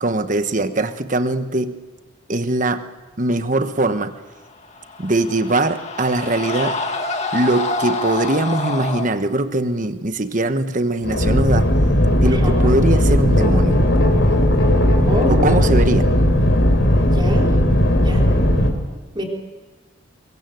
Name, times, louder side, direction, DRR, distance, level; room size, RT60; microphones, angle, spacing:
voice 1, 0.0-1.8 2.3-2.9 3.2-4.1 5.0-6.8 7.3-11.7 12.2-13.8 15.3-16.1, right 2 dB, 40° right, 9 dB, 1.2 m, -21 dB
sound 1, 4.6-9.1, left 3 dB, 35° left, 2.0 m, -27 dB
sound 2, 11.0-18.7, left 1 dB, 65° left, 3.6 m, -16 dB
voice 2, 12.2-12.8 15.1-15.4 17.0-17.5 18.0-18.3 19.1-19.2, equal, 25° right, 0 dB, 3.7 m, -26 dB
24.0 x 22.5 x 8.0 m, 1.3 s
head